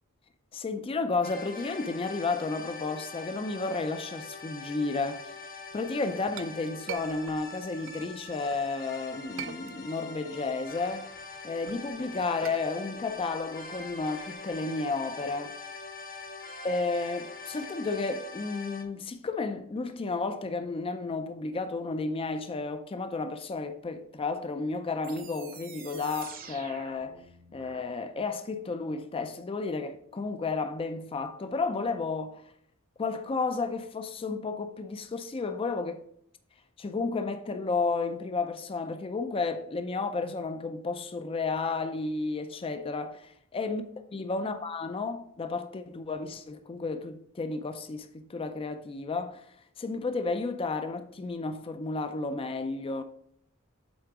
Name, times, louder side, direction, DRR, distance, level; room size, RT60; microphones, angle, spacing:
voice 1, 0.5-5.4 5.7-11.1 11.4-15.6 16.6-27.2 27.5-32.4 33.0-36.0 36.8-43.8 44.1-49.4 49.8-53.0, left 3 dB, 25° left, 0.4 m, -32 dB
sound 1, 1.2-18.8, left 3 dB, 40° left, 1.0 m, -43 dB
Chink clink, 5.8-8.7 9.1-10.2 10.5-14.6, right 8 dB, 60° right, 0.4 m, -45 dB
sound 2, 25.0-27.9, right 6 dB, 40° right, 0.9 m, -47 dB
8.0 x 3.8 x 4.8 m
head